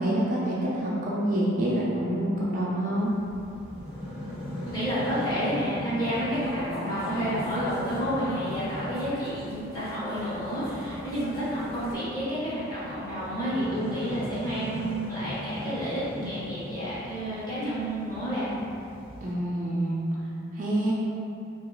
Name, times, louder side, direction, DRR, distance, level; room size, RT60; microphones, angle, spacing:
voice 1, 0.0-3.1 19.2-20.0 20.5-20.9, right 1 dB, 40° right, -6 dB, 0.4 m, -27 dB
sound 1, 3.0-19.3, left 1 dB, 55° left, 1.1 m, -40 dB
voice 2, 4.7-18.5, equal, 20° left, -11 dB, 0.8 m, -30 dB
sound 2, 6.0-11.9, left 1 dB, 85° left, 0.5 m, -39 dB
2.9 x 2.3 x 2.3 m, 2.7 s
head